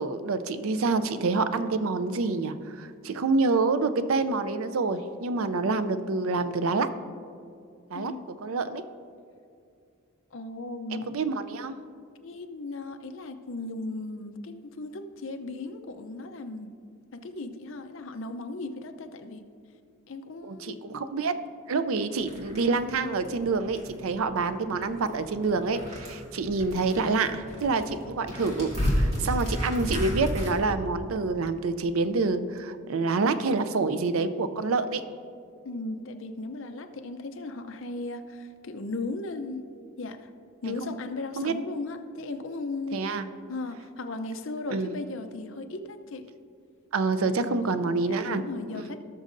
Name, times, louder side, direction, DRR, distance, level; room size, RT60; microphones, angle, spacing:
voice 1, 0.0-6.9 7.9-8.1 8.4-8.8 10.9-11.8 20.4-21.3 21.7-35.0 40.6-40.9 41.4-41.5 42.9-43.2 44.7-45.0 46.9-48.4 48.7-48.9, right 3 dB, 75° right, 11 dB, 0.5 m, -27 dB
voice 2, 10.3-11.2 12.2-16.7 17.1-19.4 20.1-21.0 35.6-39.6 40.0-40.3 40.6-43.1 43.5-46.2 47.4-47.7 48.0-49.0, left 2 dB, 60° left, 7 dB, 0.6 m, -37 dB
sound 1, 22.2-30.5, equal, 30° right, 2.1 m, -33 dB
18.0 x 6.3 x 2.6 m, 2.3 s
head